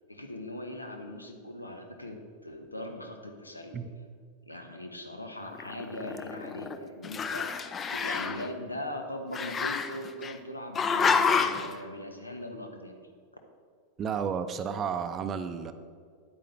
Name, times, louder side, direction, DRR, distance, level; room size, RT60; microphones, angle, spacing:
voice 1, 0.1-3.8 4.5-13.0, left 1 dB, 80° left, 5 dB, 0.9 m, -40 dB
Growling, 5.5-6.8 7.0-8.5 9.3-10.3 10.8-11.7, left 5 dB, 20° left, 0.4 m, -28 dB
voice 2, 14.0-15.7, right 7 dB, 25° right, 9 dB, 0.5 m, -32 dB
9.5 x 8.5 x 3.3 m, 2.1 s
figure-of-eight pair, 90°, 0 cm